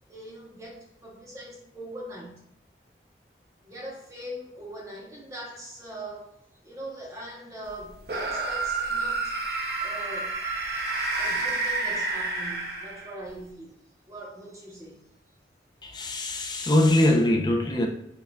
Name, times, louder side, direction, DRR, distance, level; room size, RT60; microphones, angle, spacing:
voice 1, 0.1-2.4 3.6-9.3 9.8-10.4 11.1-13.8 14.1-15.0, right 1 dB, 20° right, 0.8 m, -41 dB
sound 1, 8.0-13.3, right 3 dB, 60° right, 0.7 m, -29 dB
voice 2, 15.8-17.9, left 1 dB, 25° left, 0.4 m, -22 dB
6.4 x 2.4 x 2.2 m
head